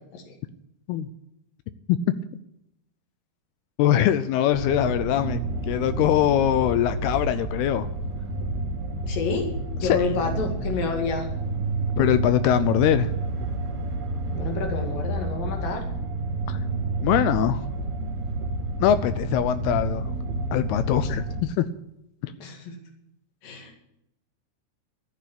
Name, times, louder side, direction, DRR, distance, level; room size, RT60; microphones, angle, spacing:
voice 1, 3.8-5.4 5.7-7.9 9.8-10.2 12.0-13.1 16.5-16.6 17.0-17.7 18.8-20.1 20.5-21.7 22.2-22.3, left 11 dB, 80° left, 12 dB, 2.6 m, -22 dB
sound 1, 4.5-21.4, right 2 dB, 70° right, 3.5 m, -29 dB
voice 2, 9.1-9.5 9.8-11.3 14.3-15.8 22.4-22.8 23.4-23.8, left 4 dB, 60° left, 3 dB, 3.9 m, -29 dB
13.5 x 9.2 x 8.6 m, 0.81 s
omnidirectional pair, 4.6 m